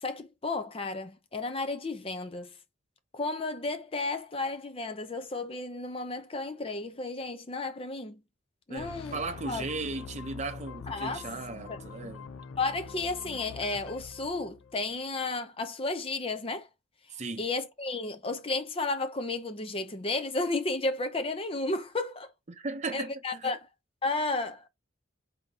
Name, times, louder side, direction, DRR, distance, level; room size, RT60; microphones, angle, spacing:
voice 1, 0.0-2.5 3.1-8.2 8.7-9.2 9.5-9.6 10.9-11.2 11.7-11.8 12.6-16.7 17.4-22.3 22.9-23.7 24.0-24.7, left 3 dB, 30° left, 0.6 m, -33 dB
voice 2, 8.7-12.3 17.1-17.5 22.5-23.5, right 3 dB, 35° right, 0.6 m, -36 dB
sound 1, 8.8-14.9, left 5 dB, 90° left, 0.4 m, -44 dB
3.8 x 2.8 x 3.6 m
head